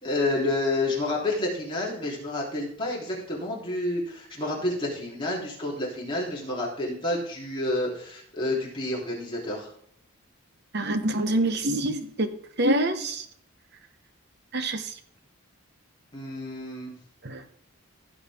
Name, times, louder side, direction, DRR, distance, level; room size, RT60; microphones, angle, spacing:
voice 1, 0.0-9.7 16.1-16.9, left 2 dB, 20° left, -5 dB, 3.5 m, -29 dB
voice 2, 10.7-13.2 14.5-14.9 17.2-17.4, right 1 dB, 50° right, 9 dB, 1.0 m, -26 dB
16.0 x 6.5 x 3.6 m, 0.63 s
head